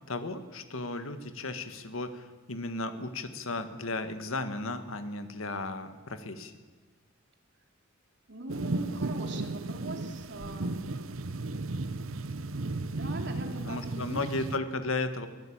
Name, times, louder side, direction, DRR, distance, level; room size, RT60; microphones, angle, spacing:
voice 1, 0.1-6.5 13.7-15.3, left 2 dB, 80° left, 9 dB, 1.8 m, -35 dB
voice 2, 8.3-10.8 12.9-14.3, right 1 dB, 60° right, 4 dB, 3.1 m, -41 dB
sound 1, 8.5-14.6, right 2 dB, 75° right, 0.9 m, -35 dB
22.5 x 16.0 x 8.8 m, 1.4 s
head